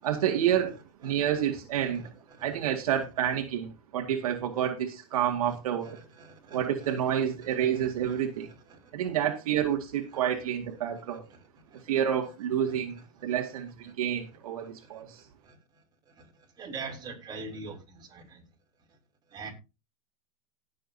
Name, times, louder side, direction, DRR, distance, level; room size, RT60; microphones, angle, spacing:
voice 1, 0.0-2.0 2.4-6.0 6.5-8.5 8.9-11.2 11.9-15.2, right 10 dB, 80° right, 2.2 m, -29 dB
voice 2, 1.8-2.5 5.8-7.2 7.7-7.8 8.1-8.2 8.7-8.9 11.7-11.8 14.6-15.0 15.4-15.6 16.1-16.3 16.6-18.4 19.3-19.5, right 4 dB, 20° right, 4.3 m, -44 dB
18.0 x 7.6 x 2.8 m
hypercardioid pair, 125°, 19 cm